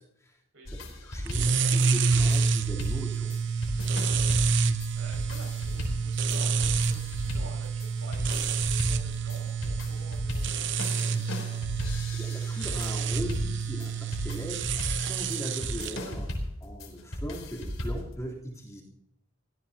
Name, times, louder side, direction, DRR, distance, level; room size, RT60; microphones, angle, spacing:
voice 1, 0.0-0.4 0.7-3.3 12.1-16.3 16.6-18.8, equal, 15° left, -4 dB, 3.5 m, -39 dB
voice 2, 0.5-0.9 4.2-11.2, right 2 dB, 90° right, 1 dB, 6.4 m, -49 dB
sound 1, 0.7-18.1, left 1 dB, 85° left, 4.0 m, -36 dB
sound 2, 1.3-16.0, right 5 dB, 60° right, 0.8 m, -28 dB
23.0 x 17.0 x 2.9 m, 0.74 s
head